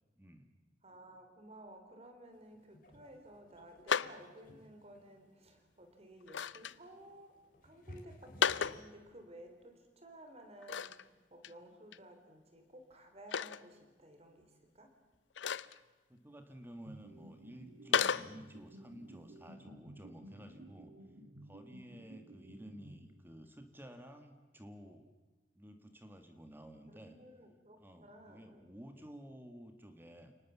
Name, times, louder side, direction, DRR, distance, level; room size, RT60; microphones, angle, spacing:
voice 1, 0.2-0.5 16.1-20.9 21.4-25.1 25.6-27.2 27.8-30.3, equal, 10° right, 6 dB, 1.7 m, -53 dB
voice 2, 0.8-7.3 7.6-14.9 26.9-28.8, right 1 dB, 35° right, 5 dB, 3.9 m, -55 dB
sound 1, 2.3-8.9, equal, 50° left, 3.7 m, -59 dB
sound 2, 3.9-4.2 6.2-6.7 8.2-8.8 10.6-11.0 11.4-11.5 11.9-12.0 13.3-13.6 15.4-15.8 17.9-18.3, left 7 dB, 85° left, 0.7 m, -33 dB
sound 3, 16.9-23.6, right 1 dB, 65° right, 2.3 m, -54 dB
29.5 x 19.5 x 7.2 m, 1.3 s
head